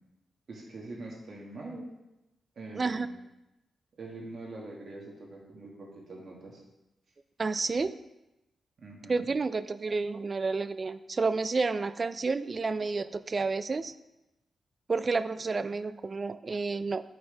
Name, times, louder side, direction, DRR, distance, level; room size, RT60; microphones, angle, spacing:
voice 1, 0.5-1.9 2.5-3.0 4.0-6.6 8.8-9.3, right 2 dB, 60° right, -2 dB, 1.7 m, -43 dB
voice 2, 2.7-3.1 7.4-8.0 9.1-13.9 14.9-17.0, right 4 dB, 40° right, 14 dB, 0.3 m, -30 dB
8.7 x 4.5 x 3.3 m, 0.95 s
cardioid pair, 90°, 0 cm